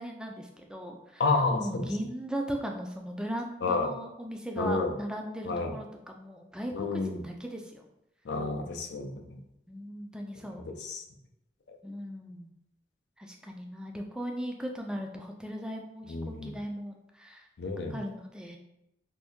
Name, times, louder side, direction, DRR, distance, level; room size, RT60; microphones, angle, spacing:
voice 1, 0.0-1.2 1.6-7.9 9.7-10.6 11.8-12.5 13.2-17.5 17.9-18.6, equal, 5° right, 2 dB, 0.3 m, -38 dB
voice 2, 1.2-1.9 3.6-3.9 4.6-4.9 5.5-5.7 6.7-7.2 8.3-9.4 10.8-11.0 16.1-16.6 17.6-18.0, left 3 dB, 75° left, 4 dB, 0.4 m, -30 dB
2.6 x 2.6 x 3.5 m, 0.85 s
head